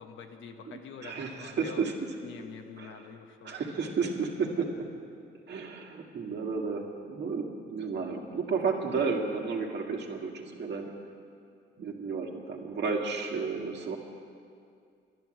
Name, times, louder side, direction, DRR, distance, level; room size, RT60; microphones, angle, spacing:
voice 1, 0.0-1.8 2.2-3.6, left 6 dB, 80° left, 5 dB, 1.1 m, -45 dB
voice 2, 0.7-1.9 2.8-3.0 3.4-4.9 5.5-10.9 11.8-14.0, right 5 dB, 60° right, 1 dB, 1.9 m, -32 dB
11.0 x 11.0 x 7.7 m, 2.3 s
cardioid pair, 90°, 20 cm